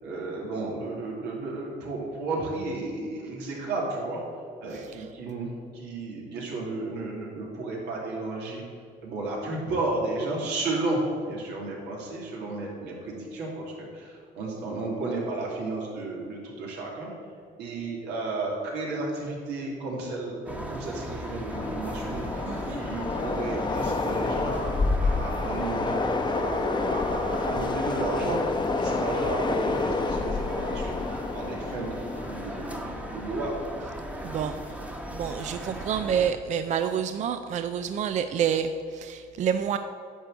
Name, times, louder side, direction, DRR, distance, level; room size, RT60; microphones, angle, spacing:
voice 1, 0.0-4.2 4.6-8.6 9.0-17.1 17.6-22.4 22.7-28.4 28.8-33.5, right 2 dB, 85° right, -3 dB, 2.8 m, -33 dB
voice 2, 4.7-5.1 22.5-22.8 34.2-34.8 35.1-39.8, right 8 dB, 45° right, 9 dB, 0.4 m, -28 dB
sound 1, 20.5-36.3, equal, 10° right, 1.1 m, -38 dB
Train, 21.5-33.8, left 3 dB, 25° left, 0.9 m, -29 dB
10.0 x 4.6 x 7.9 m, 2.2 s
cardioid pair, 110°, 17 cm